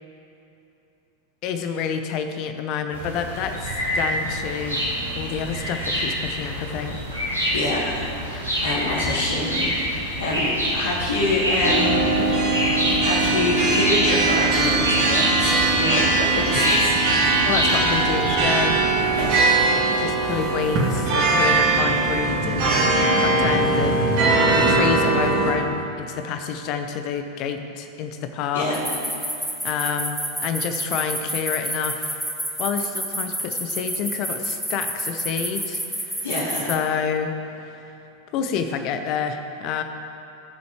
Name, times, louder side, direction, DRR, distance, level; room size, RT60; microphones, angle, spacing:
voice 1, 1.4-4.8 5.2-7.0 17.4-18.8 20.0-24.0 24.5-28.7 29.2-29.3 29.6-32.2 32.6-36.3 36.7-37.3 37.7-37.8 38.3-39.8, left 7 dB, 40° left, 7 dB, 0.9 m, -28 dB
sound 1, 2.9-18.5, equal, 85° right, 2.7 m, -26 dB
voice 2, 7.5-12.2 13.0-17.5 19.2-19.6 28.5-28.8 36.2-36.7, left 2 dB, 65° left, -7 dB, 2.6 m, -26 dB
sound 2, 11.6-25.5, right 3 dB, 45° right, 2.5 m, -20 dB
sound 3, 28.7-36.7, equal, ahead, 1.8 m, -28 dB
20.0 x 7.0 x 3.2 m, 2.9 s
figure-of-eight pair, 90°, 0 cm